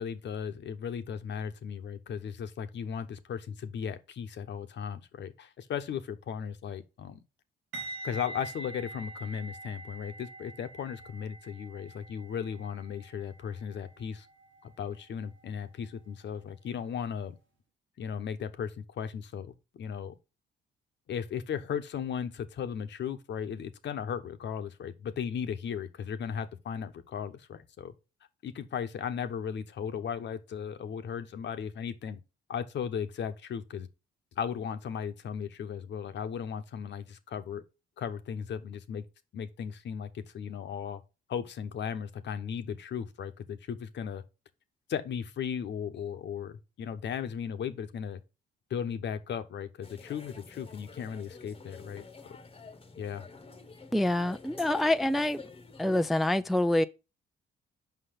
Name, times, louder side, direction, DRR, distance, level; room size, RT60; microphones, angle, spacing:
voice 1, 0.0-7.2 8.0-14.3 14.6-17.4 18.0-20.1 21.1-27.9 28.4-32.2 32.5-33.9 34.4-37.6 38.0-39.0 39.3-41.0 41.3-44.2 44.9-48.2 48.7-52.0 53.0-53.3, left 7 dB, 65° left, 1.0 m, -36 dB
sound 1, 7.7-16.7 16.9-17.2, right 2 dB, 80° right, 1.4 m, -46 dB
sound 2, 49.8-56.1, left 3 dB, 30° left, 1.0 m, -49 dB
voice 2, 53.9-55.4 55.8-56.8, left 1 dB, ahead, 0.4 m, -26 dB
5.9 x 5.4 x 5.0 m
cardioid pair, 90°, 20 cm